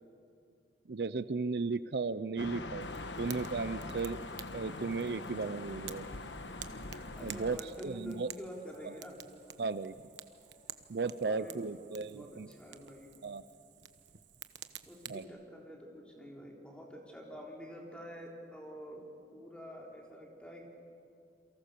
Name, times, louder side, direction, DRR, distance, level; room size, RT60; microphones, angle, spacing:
voice 1, 0.9-2.9 3.2-4.2 4.5-6.2 7.2-8.3 9.6-9.9 10.9-12.5 13.2-13.4 15.1-15.3, right 4 dB, 65° right, 14 dB, 0.5 m, -35 dB
sound 1, 2.4-7.6, left 2 dB, 85° left, 1.4 m, -43 dB
Fire, 2.8-15.2, right 10 dB, 90° right, 1.2 m, -51 dB
sound 2, 5.0-11.2, equal, 55° left, 4.4 m, -64 dB
voice 2, 7.2-9.2 11.2-13.1 14.9-19.1 19.3-20.7, equal, 5° left, -1 dB, 3.9 m, -48 dB
29.0 x 23.5 x 6.8 m, 2.5 s
head